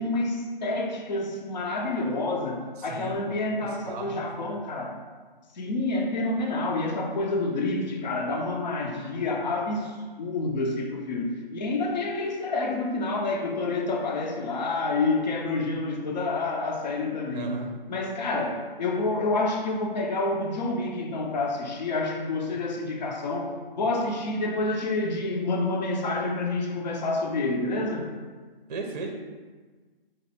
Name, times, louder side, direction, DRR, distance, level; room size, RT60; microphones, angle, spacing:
voice 1, 0.0-5.0 5.5-17.6 17.9-28.1, left 2 dB, 50° left, 2 dB, 0.7 m, -28 dB
voice 2, 2.8-3.3 3.6-4.5 17.3-17.7 28.7-29.1, right 2 dB, 45° right, 3 dB, 0.6 m, -36 dB
5.3 x 2.5 x 4.0 m, 1.4 s
hypercardioid pair, 160°, 29 cm